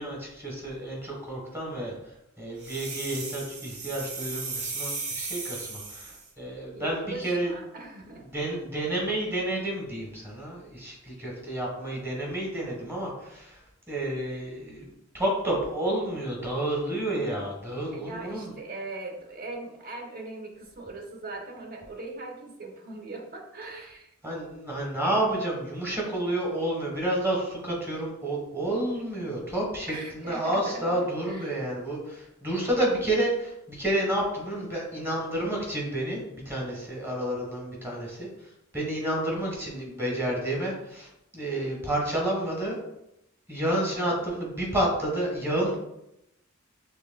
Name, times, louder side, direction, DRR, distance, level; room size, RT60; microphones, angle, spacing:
voice 1, 0.0-1.9 2.4-7.5 8.3-13.6 13.9-14.9 15.1-18.5 24.2-38.3 38.7-42.8 43.5-45.8, right 1 dB, 10° right, -2 dB, 1.3 m, -30 dB
sound 1, 2.6-6.3, right 4 dB, 90° right, 1.1 m, -36 dB
voice 2, 6.7-8.3 12.9-13.0 17.9-24.1 29.9-31.0 31.2-31.6, right 2 dB, 45° right, 2 dB, 0.8 m, -40 dB
6.2 x 3.2 x 2.3 m, 0.85 s
head